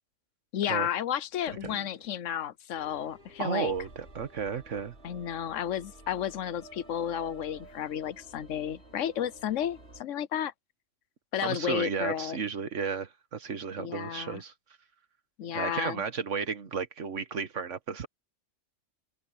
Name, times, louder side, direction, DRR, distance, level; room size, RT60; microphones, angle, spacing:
voice 1, 0.5-3.7 5.0-10.5 11.3-12.4 13.8-14.4 15.4-16.0, left 10 dB, 90° left, 1.1 m, -32 dB
sound 1, 1.3-2.7, left 1 dB, 35° left, 2.3 m, -50 dB
sound 2, 2.8-10.0, right 2 dB, 60° right, 6.0 m, -52 dB
voice 2, 3.4-4.9 11.4-14.5 15.5-18.1, right 6 dB, 75° right, 1.6 m, -33 dB
open air
omnidirectional pair, 1.3 m